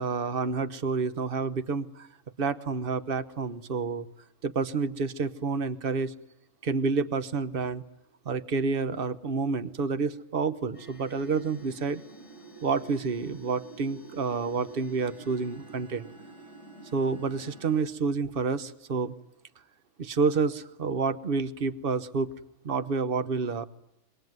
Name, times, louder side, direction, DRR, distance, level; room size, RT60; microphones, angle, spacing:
voice 1, 0.0-2.1 2.4-4.1 4.4-6.1 6.6-7.8 8.2-12.0 12.6-16.1 16.9-19.1 20.0-22.3 22.6-23.7, right 4 dB, 45° right, 13 dB, 1.3 m, -29 dB
sound 1, 10.7-17.8, right 4 dB, 25° left, 4.8 m, -48 dB
26.5 x 22.5 x 9.5 m, 0.86 s
omnidirectional pair, 1.3 m